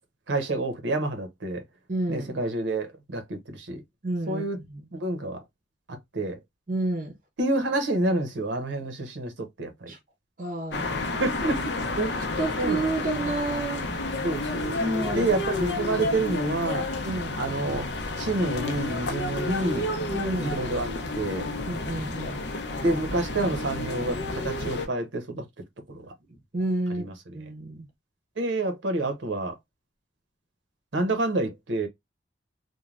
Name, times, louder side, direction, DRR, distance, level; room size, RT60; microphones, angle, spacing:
voice 1, 0.3-1.6 2.1-3.8 4.3-4.6 4.9-5.4 5.9-6.4 7.4-9.9 11.2-11.7 12.6-12.8 14.2-14.7 15.1-16.9 17.4-17.9 18.2-19.9 20.4-21.5 22.8-25.4 25.9-26.1 27.0-27.1 28.4-29.6 30.9-31.9, right 2 dB, 75° right, 0.7 m, -28 dB
voice 2, 1.9-2.3 4.0-4.9 6.7-7.1 9.9-10.0 10.4-11.0 12.0-13.9 14.8-15.3 15.9-16.2 17.0-17.3 20.1-20.6 21.7-22.4 26.5-27.1 27.3-27.9, right 2 dB, 45° right, 0.6 m, -30 dB
sound 1, 10.7-24.9, left 2 dB, 65° left, 0.6 m, -30 dB
3.1 x 2.1 x 2.4 m
head